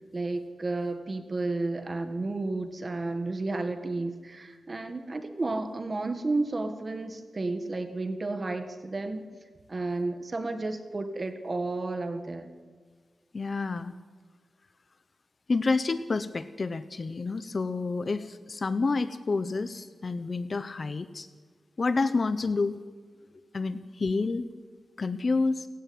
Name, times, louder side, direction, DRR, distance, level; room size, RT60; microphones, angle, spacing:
voice 1, 0.1-9.3 9.7-12.5, right 2 dB, 30° right, 8 dB, 1.8 m, -32 dB
voice 2, 13.3-13.9 15.5-21.3 21.8-22.8 23.5-24.4 25.0-25.7, left 3 dB, 40° left, 12 dB, 1.0 m, -29 dB
30.0 x 16.5 x 9.6 m, 1.5 s
wide cardioid pair, 150°, 0 cm